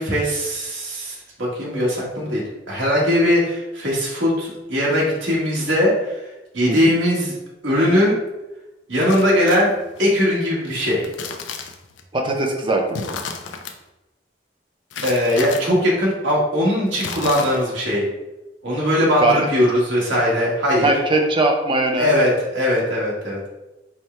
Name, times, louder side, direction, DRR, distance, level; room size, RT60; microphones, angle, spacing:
voice 1, 0.0-2.4 2.7-6.3 6.5-7.3 7.6-8.2 8.9-9.7 10.0-11.0 15.0-18.1 18.6-20.9 22.0-23.5, left 1 dB, 90° right, -4 dB, 1.4 m, -20 dB
sound 1, 9.1-10.0 10.9-12.0 12.9-13.7 14.9-15.6 16.9-17.8, left 5 dB, 80° left, 0.5 m, -32 dB
voice 2, 12.1-12.8 19.2-19.5 20.8-22.1, right 2 dB, 25° right, 2 dB, 0.6 m, -19 dB
4.6 x 2.2 x 4.3 m, 1.0 s
head